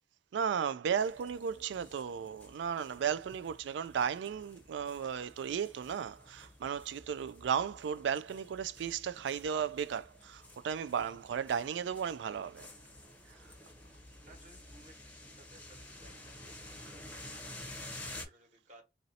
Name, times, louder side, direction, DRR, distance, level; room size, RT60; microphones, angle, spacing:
voice 1, 0.3-12.7 13.3-13.4, right 7 dB, 75° right, 0.3 m, -35 dB
sound 1, 1.0-18.2, left 1 dB, 10° left, 0.7 m, -51 dB
voice 2, 14.2-18.8, right 2 dB, 45° right, 1.2 m, -61 dB
3.0 x 2.6 x 2.7 m
head